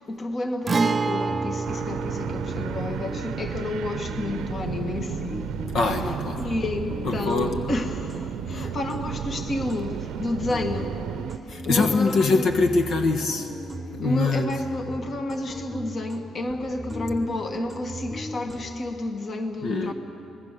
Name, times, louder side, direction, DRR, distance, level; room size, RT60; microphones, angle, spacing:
voice 1, 0.1-5.5 6.4-10.9 11.6-12.5 14.0-19.9, left 2 dB, 35° left, 5 dB, 1.5 m, -30 dB
Guitar, 0.7-8.3 8.6-8.7 10.7-10.8, right 4 dB, 25° right, 0.5 m, -31 dB
sound 1, 1.0-3.4 3.7-9.8 10.1-16.2 16.5-18.7, equal, ahead, 1.4 m, -38 dB
sound 2, 1.6-11.4, right 9 dB, 90° right, 0.7 m, -33 dB
voice 2, 5.7-6.4 7.0-7.5 8.5-8.7 11.5-13.5 14.0-14.5 19.6-19.9, left 3 dB, 65° left, 4 dB, 1.4 m, -23 dB
25.0 x 20.5 x 6.7 m, 2.8 s
cardioid pair, 145°, 0 cm